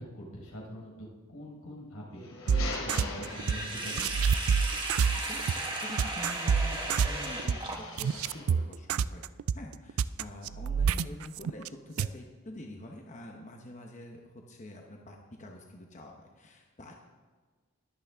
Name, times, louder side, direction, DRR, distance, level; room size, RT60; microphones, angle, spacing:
voice 1, 0.1-4.0, equal, 90° left, -3 dB, 4.7 m, -44 dB
sound 1, 2.1-4.0 5.6-8.6, left 3 dB, 65° left, 3.0 m, -42 dB
sound 2, 2.5-3.6 4.0-11.7 12.0-12.1, right 6 dB, 75° right, 0.3 m, -27 dB
Sink (filling or washing), 3.3-8.2, right 2 dB, 25° right, 1.5 m, -36 dB
voice 2, 5.2-9.2 9.5-16.9, left 1 dB, 35° left, 1 dB, 1.0 m, -46 dB
21.0 x 8.5 x 3.6 m, 1.4 s
head